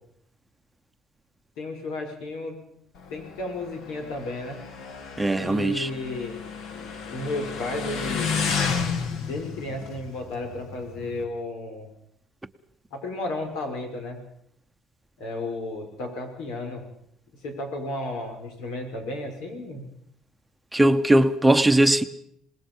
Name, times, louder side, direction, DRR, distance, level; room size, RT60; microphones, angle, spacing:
voice 1, 1.6-2.6 3.1-4.6 5.4-8.4 9.1-11.9 12.9-14.2 15.2-16.8 17.4-19.8, left 2 dB, 90° left, 5.9 m, -33 dB
Motorcycle, 3.0-11.2, left 5 dB, 70° left, 2.6 m, -32 dB
voice 2, 5.2-5.9 20.7-22.0, right 1 dB, 10° right, 0.9 m, -19 dB
26.5 x 20.0 x 5.5 m
cardioid pair, 135°, 0 cm